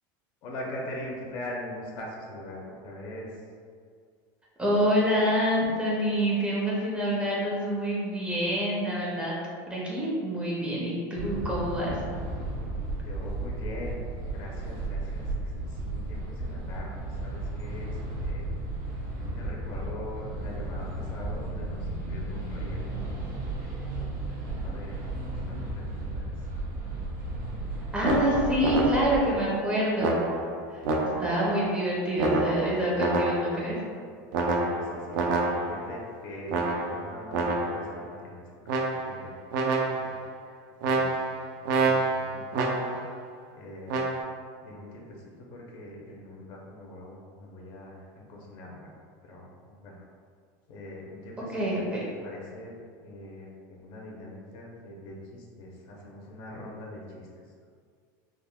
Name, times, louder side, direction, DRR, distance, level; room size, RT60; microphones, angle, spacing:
voice 1, 0.4-3.3 13.0-14.0 14.3-18.6 19.2-23.1 23.5-25.0 25.3-26.3 34.5-35.3 35.7-39.5 39.9-40.2 40.5-41.2 41.5-43.0 43.5-44.1 44.6-48.9 49.2-50.0 50.7-51.9 52.2-52.7 53.0-57.3, left 1 dB, 50° left, -2 dB, 0.6 m, -42 dB
voice 2, 4.6-9.4 9.7-11.9 27.9-30.3 31.2-33.8 51.5-51.8, equal, 10° right, -5 dB, 0.5 m, -26 dB
sound 1, 11.2-29.2, right 2 dB, 60° right, 0.9 m, -34 dB
sound 2, 28.0-29.3 30.0-31.5 32.2-33.7 34.3-35.9 36.5-37.9 38.7-39.3 39.5-40.2 40.8-43.1 43.9-44.2, right 2 dB, 80° right, 0.4 m, -28 dB
3.5 x 2.1 x 2.2 m, 2.1 s
supercardioid pair, 145°, 10 cm